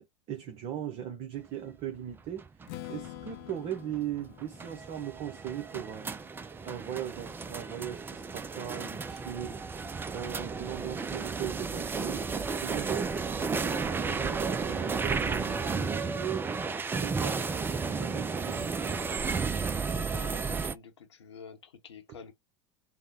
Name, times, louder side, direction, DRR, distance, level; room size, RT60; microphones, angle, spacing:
voice 1, 0.0-2.5 2.9-6.2 6.6-9.6 10.1-12.3 12.6-16.5 16.9-17.4 17.8-19.0, right 10 dB, 45° right, 0.9 m, -38 dB
sound 1, 2.1-20.7, right 4 dB, 15° right, 0.4 m, -33 dB
Strum, 2.7-6.6, left 15 dB, 55° left, 0.7 m, -47 dB
voice 2, 19.9-22.3, left 6 dB, 80° left, 1.0 m, -48 dB
3.5 x 2.2 x 4.4 m
hypercardioid pair, 85°, 14 cm